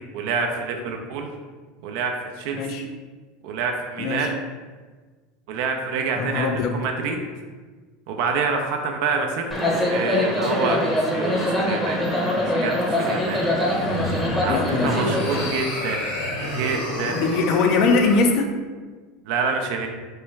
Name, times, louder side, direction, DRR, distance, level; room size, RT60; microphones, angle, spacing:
voice 1, 0.1-1.3 1.8-2.9 3.4-4.3 5.5-7.2 8.1-10.8 11.1-12.1 12.6-13.4 14.4-16.2 16.5-17.2 19.2-19.9, right 4 dB, 70° right, 3 dB, 0.4 m, -27 dB
voice 2, 2.5-2.9 4.0-4.3 6.2-6.8 14.5-15.4 17.2-18.5, left 4 dB, 55° left, 5 dB, 0.4 m, -22 dB
sound 1, 9.5-15.5, left 1 dB, 10° left, 0.7 m, -23 dB
sound 2, 13.5-18.3, left 1 dB, 85° left, 1.3 m, -30 dB
3.1 x 2.3 x 3.1 m, 1.4 s
hypercardioid pair, 100°, 0 cm